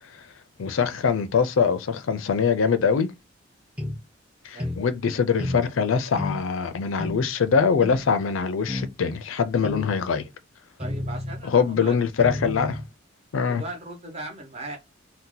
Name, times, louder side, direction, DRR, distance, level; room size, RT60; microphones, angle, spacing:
voice 1, 0.6-3.1 4.4-10.3 11.4-12.8 13.3-13.6, left 6 dB, 85° left, 0.5 m, -23 dB
sound 1, 3.8-4.0 4.6-4.8 5.4-5.6 6.2-6.4 7.0-7.2 7.8-8.0 8.7-8.9 9.6-9.9 10.8-11.4 12.2-12.9, left 1 dB, 5° right, 0.6 m, -31 dB
voice 2, 4.5-4.9 10.8-12.0 13.5-14.8, right 2 dB, 30° right, 1.0 m, -38 dB
2.8 x 2.1 x 3.7 m
head